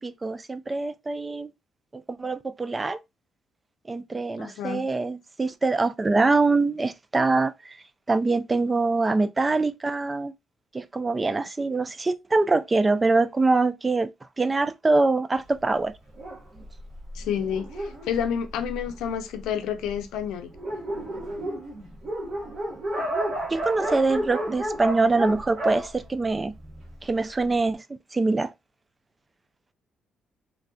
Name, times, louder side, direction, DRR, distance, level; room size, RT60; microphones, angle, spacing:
voice 1, 0.0-1.5 2.1-3.0 3.9-7.8 8.1-10.3 10.7-14.1 14.4-15.9 23.5-26.5 27.0-27.8 28.1-28.5, right 3 dB, 25° right, 0.3 m, -24 dB
voice 2, 4.4-4.8 17.1-20.5, left 8 dB, 90° left, 0.5 m, -29 dB
Dog, 16.2-19.1 19.8-19.9 20.2-20.3 20.5-26.9, right 1 dB, 60° right, 1.4 m, -32 dB
3.2 x 2.3 x 2.6 m
cardioid pair, 90°, 0 cm